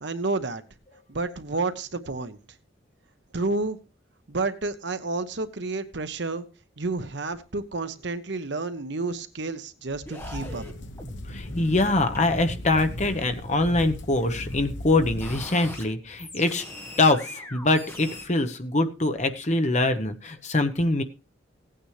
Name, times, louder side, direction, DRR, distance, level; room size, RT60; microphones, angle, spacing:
voice 1, 0.0-0.6 1.1-2.4 3.3-3.8 4.3-6.5 6.8-10.6, right 3 dB, 60° right, 10 dB, 0.9 m, -30 dB
sound 1, 9.9-13.3 13.6-15.8 16.2-18.2, left 1 dB, 10° left, 1.5 m, -41 dB
sound 2, 10.2-15.5, left 1 dB, 65° left, 1.0 m, -38 dB
voice 2, 11.3-16.6 17.0-21.0, left 2 dB, 35° left, 8 dB, 1.0 m, -24 dB
16.5 x 8.9 x 3.3 m, 0.32 s
head